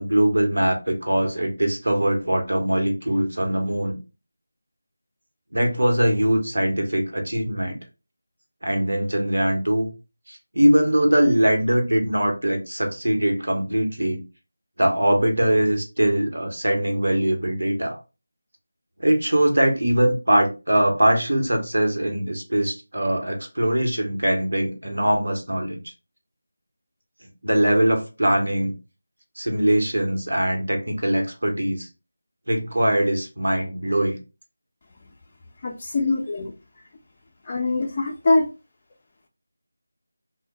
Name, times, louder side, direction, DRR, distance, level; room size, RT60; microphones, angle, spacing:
voice 1, 0.0-4.0 5.5-7.8 8.6-9.9 10.3-14.2 14.8-18.0 19.0-25.8 27.4-28.7 29.4-31.9 32.5-34.2, right 1 dB, 75° right, 0.9 m, -22 dB
voice 2, 35.6-36.5 37.4-38.5, left 3 dB, 30° left, 0.3 m, -23 dB
2.2 x 2.1 x 3.8 m
figure-of-eight pair, 165°, 0 cm